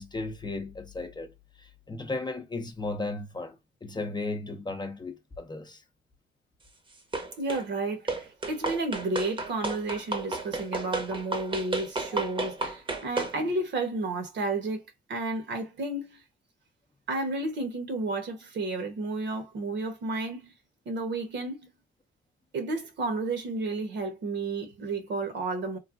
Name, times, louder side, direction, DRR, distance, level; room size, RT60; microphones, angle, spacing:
voice 1, 0.0-1.3 1.6-5.8 9.7-9.8 13.4-13.5, left 2 dB, 20° left, 0.6 m, -35 dB
sound 1, 7.1-7.7 8.1-13.4, right 2 dB, 25° right, 0.8 m, -32 dB
voice 2, 7.4-14.8 15.1-16.2 17.1-20.5 20.9-21.7 22.5-25.8, right 2 dB, 65° right, 1.0 m, -32 dB
3.2 x 2.2 x 2.5 m
cardioid pair, 90°, 20 cm